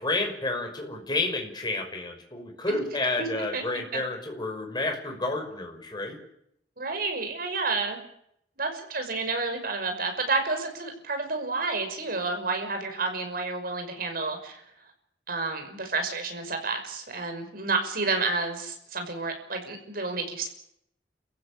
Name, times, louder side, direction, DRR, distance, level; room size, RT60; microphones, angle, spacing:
voice 1, 0.0-6.2, left 2 dB, 25° left, 2 dB, 5.7 m, -30 dB
voice 2, 6.8-8.0 8.6-14.6 15.3-20.5, right 3 dB, 55° right, 5 dB, 5.8 m, -30 dB
30.0 x 15.5 x 8.8 m, 0.74 s
head